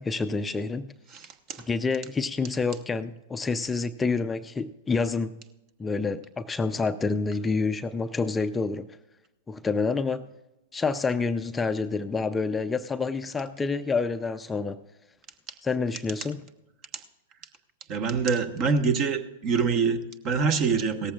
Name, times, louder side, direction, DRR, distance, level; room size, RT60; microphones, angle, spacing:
voice 1, 0.0-0.9 1.7-5.4 5.8-8.9 9.5-10.3 10.7-14.8 15.6-16.4, left 4 dB, 15° left, 9 dB, 0.5 m, -28 dB
voice 2, 1.1-1.7 16.9-17.0 17.9-21.1, right 5 dB, 40° right, 9 dB, 1.2 m, -25 dB
17.5 x 14.5 x 2.4 m, 1.0 s
hypercardioid pair, 105°, 0 cm